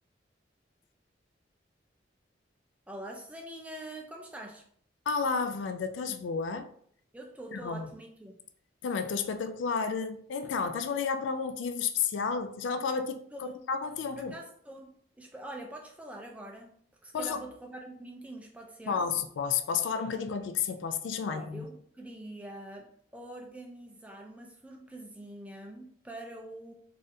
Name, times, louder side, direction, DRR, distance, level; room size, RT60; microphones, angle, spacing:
voice 1, 2.9-4.6 7.1-8.3 13.3-13.5 14.1-14.9 15.2-16.7 17.0-19.1 21.3-26.7, right 1 dB, 5° right, 0.3 m, -44 dB
voice 2, 5.1-6.7 7.5-7.9 8.8-14.3 17.1-17.4 18.9-21.7, left 5 dB, 80° left, 0.3 m, -31 dB
4.0 x 2.4 x 2.6 m
head